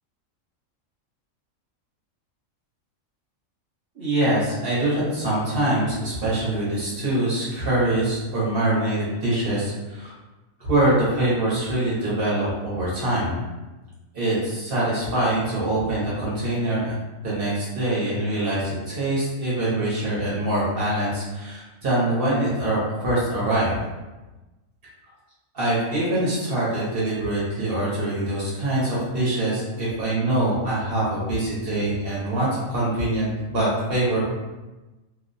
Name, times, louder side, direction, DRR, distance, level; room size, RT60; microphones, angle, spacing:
voice 1, 3.9-10.1 10.7-13.3 14.1-17.0 17.2-23.8 25.5-34.2, right 1 dB, 50° right, -7 dB, 0.9 m, -24 dB
2.4 x 2.1 x 2.6 m, 1.1 s
omnidirectional pair, 1.4 m